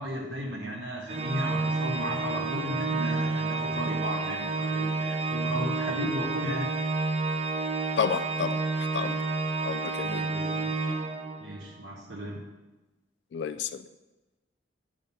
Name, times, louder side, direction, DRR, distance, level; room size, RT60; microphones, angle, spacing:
voice 1, 0.0-6.7 10.0-10.7 11.4-12.4, equal, 90° right, -3 dB, 1.2 m, -35 dB
Organ, 1.1-11.7, right 3 dB, 35° right, 0.5 m, -30 dB
voice 2, 8.0-9.2 9.6-10.3 13.3-13.8, left 6 dB, 70° left, 11 dB, 0.3 m, -31 dB
10.5 x 3.7 x 5.4 m, 1.1 s
head